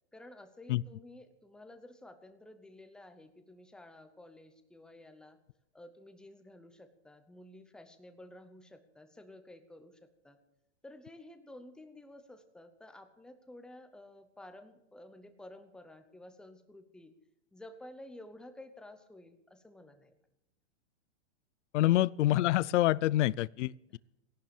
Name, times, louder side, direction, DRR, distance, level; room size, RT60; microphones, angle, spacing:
voice 1, 0.1-5.4 5.7-10.4 10.8-17.1 17.5-20.2 21.8-22.1 23.9-24.0, left 1 dB, ahead, 9 dB, 0.8 m, -52 dB
voice 2, 21.7-24.0, left 15 dB, 75° left, 23 dB, 0.5 m, -27 dB
17.5 x 11.5 x 7.1 m, 0.86 s
supercardioid pair, 155°, 36 cm